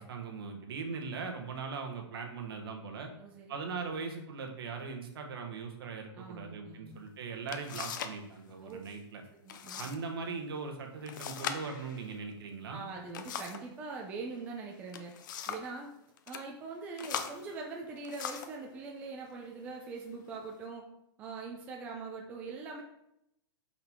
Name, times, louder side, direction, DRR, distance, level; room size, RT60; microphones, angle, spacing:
voice 1, 0.0-3.1 3.5-9.2 9.7-12.8, right 4 dB, 60° right, 3 dB, 1.3 m, -40 dB
voice 2, 3.2-3.5 6.2-7.0 8.6-8.8 9.3-10.0 12.7-15.1 15.5-15.9 16.3-20.8 21.2-22.8, right 4 dB, 10° right, -1 dB, 0.4 m, -42 dB
sound 1, 7.0-7.1 7.5-8.2 8.5-9.0 9.5-10.0 10.3-10.4 11.1-13.7 14.7-15.8 16.2-16.5 17.0-18.6 19.4-19.6 20.1-20.6, left 8 dB, 45° left, 0.5 m, -41 dB
5.6 x 5.5 x 3.6 m, 0.80 s
hypercardioid pair, 170°, 15 cm